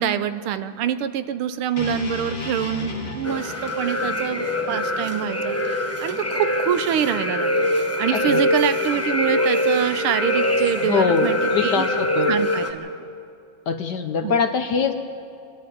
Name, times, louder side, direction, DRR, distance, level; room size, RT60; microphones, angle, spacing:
voice 1, 0.0-7.7 8.0-11.9 12.3-12.9 14.2-14.4, right 9 dB, 80° right, 11 dB, 1.6 m, -25 dB
sound 1, 1.8-5.9, left 3 dB, 35° left, 2.1 m, -34 dB
sound 2, 3.2-12.7, left 1 dB, 15° left, 0.6 m, -23 dB
voice 2, 8.1-8.4 10.8-12.3 13.7-14.9, left 6 dB, 60° left, 7 dB, 1.3 m, -23 dB
25.5 x 11.0 x 9.3 m, 2.6 s
omnidirectional pair, 2.4 m